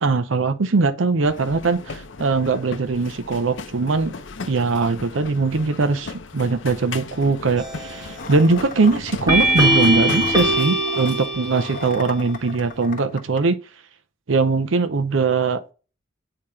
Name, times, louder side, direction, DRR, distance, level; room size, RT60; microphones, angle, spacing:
voice 1, 0.0-4.1 4.5-13.6 14.3-15.7, right 4 dB, 85° right, 0.6 m, -21 dB
sound 1, 1.2-10.6, left 4 dB, 70° left, 0.7 m, -35 dB
sound 2, 7.6-8.1 9.3-12.0, right 1 dB, 20° right, 1.4 m, -21 dB
sound 3, 8.2-13.4, left 4 dB, 45° left, 1.1 m, -37 dB
8.7 x 2.9 x 4.8 m
head